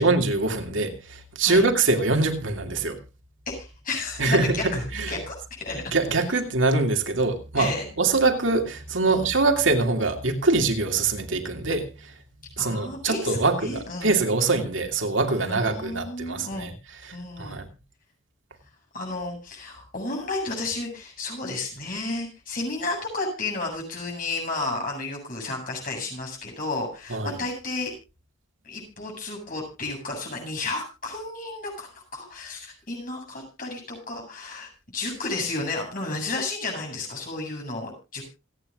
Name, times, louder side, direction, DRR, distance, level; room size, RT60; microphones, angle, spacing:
voice 1, 0.0-3.0 4.2-4.6 4.9-5.1 5.9-7.7 8.0-11.9 12.6-16.7 17.4-17.7 27.1-27.4, right 3 dB, 80° right, 5 dB, 2.5 m, -23 dB
voice 2, 3.5-5.8 6.2-6.3 7.6-7.9 9.1-9.3 12.6-14.2 15.3-16.7 17.1-17.6 18.9-27.9 28.6-38.2, left 2 dB, 45° left, 1 dB, 8.0 m, -32 dB
28.0 x 9.6 x 2.5 m, 0.29 s
head